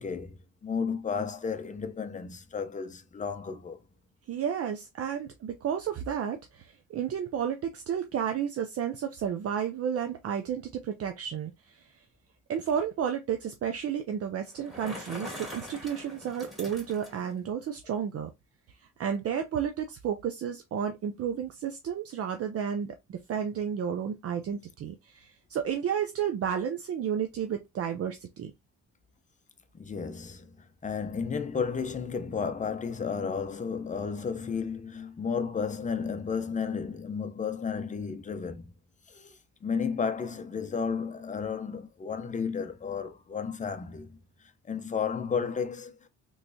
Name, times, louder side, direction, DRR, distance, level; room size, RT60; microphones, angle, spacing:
voice 1, 0.0-3.8 29.7-38.7 39.1-44.2 44.6-46.1, left 6 dB, 25° left, 0.6 m, -33 dB
voice 2, 4.3-11.9 12.5-18.3 19.0-28.5, right 8 dB, 50° right, 0.5 m, -32 dB
Bicycle, 14.5-17.3, left 1 dB, ahead, 2.2 m, -42 dB
3.2 x 3.1 x 2.6 m
cardioid pair, 90°, 30 cm